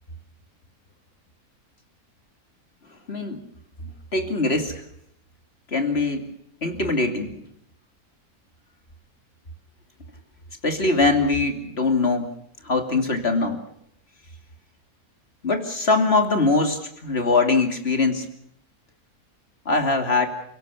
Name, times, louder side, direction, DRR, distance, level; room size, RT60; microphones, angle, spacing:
voice 1, 3.1-3.4 4.1-4.8 5.7-6.3 6.6-7.4 10.6-12.3 12.6-13.6 15.4-18.3 19.6-20.3, left 3 dB, 40° left, 5 dB, 2.9 m, -22 dB
29.5 x 16.5 x 7.0 m, 0.73 s
omnidirectional pair, 1.6 m